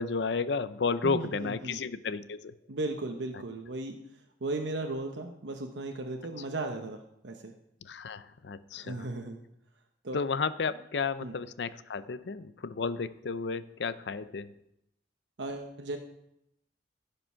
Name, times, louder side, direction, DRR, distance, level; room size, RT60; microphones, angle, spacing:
voice 1, 0.0-2.5 7.9-9.1 10.1-14.5, left 4 dB, 70° left, 14 dB, 0.5 m, -32 dB
voice 2, 1.0-1.8 2.7-4.0 4.4-7.5 8.7-9.4 10.0-10.2 11.2-11.4 15.4-16.0, right 2 dB, 85° right, 3 dB, 0.9 m, -36 dB
15.5 x 5.2 x 5.7 m, 0.82 s
head